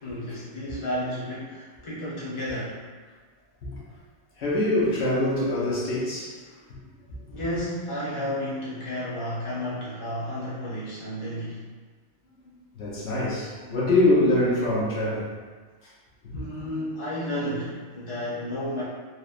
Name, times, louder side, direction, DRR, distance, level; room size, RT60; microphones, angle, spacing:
voice 1, 0.0-2.8 7.3-11.6 16.3-18.8, equal, 30° left, -9 dB, 0.8 m, -32 dB
voice 2, 4.4-6.3 12.8-15.3 16.2-16.4, left 1 dB, 70° left, -7 dB, 0.9 m, -24 dB
2.9 x 2.1 x 2.4 m, 1.4 s
omnidirectional pair, 1.1 m